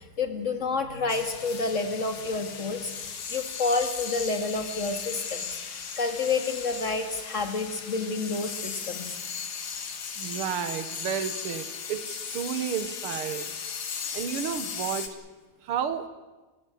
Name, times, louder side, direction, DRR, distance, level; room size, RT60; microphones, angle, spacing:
voice 1, 0.0-5.6 6.0-9.2, left 3 dB, 35° left, 6 dB, 2.4 m, -29 dB
sound 1, 1.1-15.1, left 6 dB, 60° left, 2.2 m, -37 dB
voice 2, 10.2-13.5 14.1-15.2 15.6-16.1, right 8 dB, 80° right, 10 dB, 2.1 m, -32 dB
29.0 x 15.5 x 7.8 m, 1.2 s
omnidirectional pair, 2.4 m